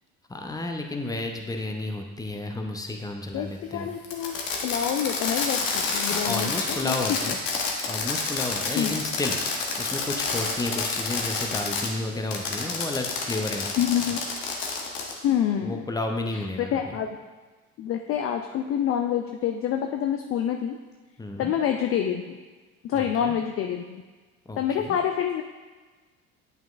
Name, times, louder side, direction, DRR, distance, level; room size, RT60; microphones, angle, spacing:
voice 1, 0.3-3.9 6.0-7.4 7.9-13.7 15.6-17.0 21.2-21.5 22.9-23.3 24.5-25.0, left 2 dB, 10° left, 3 dB, 0.7 m, -32 dB
voice 2, 3.3-4.3 4.6-6.9 7.3-7.4 8.8-9.0 13.8-14.2 15.2-15.9 16.3-17.1 17.8-20.8 21.4-22.4 22.8-24.0 24.6-25.4, left 9 dB, 35° left, 4 dB, 0.4 m, -27 dB
Fireworks, 4.0-11.9 12.3-15.2, left 4 dB, 65° left, 1.2 m, -29 dB
8.9 x 5.3 x 2.5 m, 1.3 s
figure-of-eight pair, 60°, 42 cm